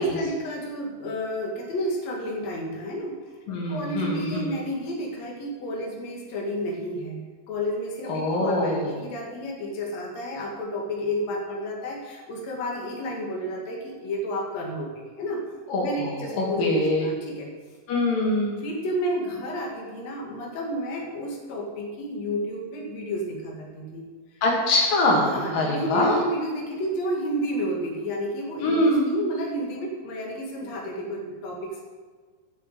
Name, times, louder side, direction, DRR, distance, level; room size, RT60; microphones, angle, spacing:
voice 1, 0.0-3.4 3.7-15.4 15.8-17.5 18.6-24.1 25.2-31.8, equal, 55° left, -1 dB, 3.2 m, -31 dB
voice 2, 3.5-4.6 8.1-8.8 15.7-17.0 17.9-18.6 24.4-26.1 28.6-29.1, left 2 dB, 90° left, -2 dB, 4.1 m, -23 dB
14.0 x 7.3 x 8.1 m, 1.5 s
omnidirectional pair, 3.8 m